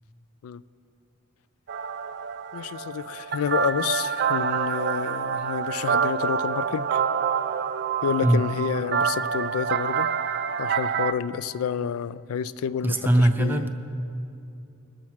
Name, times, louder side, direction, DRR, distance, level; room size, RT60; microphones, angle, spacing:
sound 1, 1.7-11.1, right 7 dB, 55° right, 0.4 m, -27 dB
voice 1, 2.5-7.0 8.0-10.1 10.6-13.6, left 7 dB, 85° left, 17 dB, 0.3 m, -29 dB
voice 2, 12.8-13.7, right 1 dB, 10° right, 5 dB, 0.6 m, -20 dB
21.5 x 7.2 x 4.6 m, 2.7 s
head